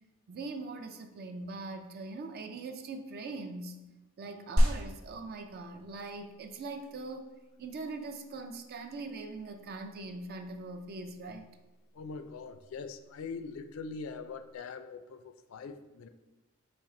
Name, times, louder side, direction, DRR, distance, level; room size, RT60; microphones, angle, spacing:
voice 1, 0.3-3.8 4.2-7.3 7.6-11.5, right 3 dB, 45° right, 6 dB, 0.4 m, -41 dB
sound 1, 4.6-14.5, equal, 65° right, 0.8 m, -36 dB
voice 2, 11.9-16.1, left 4 dB, 65° left, 9 dB, 0.3 m, -42 dB
4.4 x 3.1 x 3.7 m, 1.1 s
head